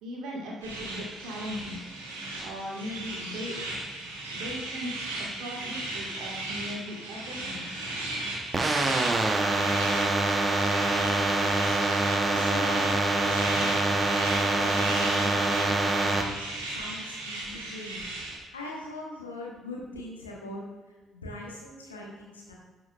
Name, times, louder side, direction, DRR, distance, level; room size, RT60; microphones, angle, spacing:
voice 1, 0.0-1.8 2.4-3.6 4.3-7.7, equal, 60° right, -2 dB, 1.7 m, -38 dB
sound 1, 0.6-18.4, right 2 dB, 75° right, 1.6 m, -36 dB
sound 2, 8.5-16.2, right 2 dB, 25° right, 0.9 m, -25 dB
voice 2, 12.3-13.8 14.5-16.2 16.6-18.1 18.5-22.5, left 2 dB, 80° left, -2 dB, 1.3 m, -41 dB
12.0 x 5.7 x 2.4 m, 1.3 s
figure-of-eight pair, 45°, 0 cm